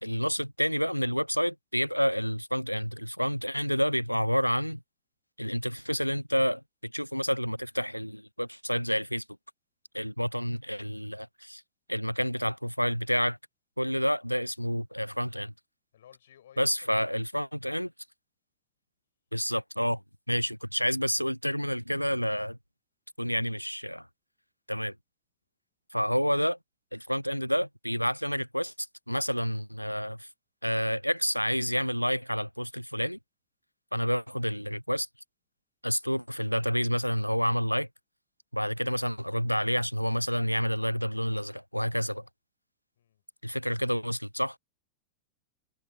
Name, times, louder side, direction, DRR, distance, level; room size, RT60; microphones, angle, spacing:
voice 1, 0.0-4.8 5.4-9.2 9.9-11.6 11.9-13.4 13.8-15.5 16.6-17.9 19.3-20.0 20.3-22.6 23.2-24.1 24.7-24.9 25.9-26.6 26.9-28.7 29.1-30.3 30.6-33.2 33.9-35.1 35.8-37.9 38.5-42.3 43.4-44.6, equal, 90° left, 0.5 m, -29 dB
voice 2, 15.9-17.0 43.0-43.2, left 10 dB, 60° left, 5.3 m, -56 dB
figure-of-eight pair, 90°, 0 cm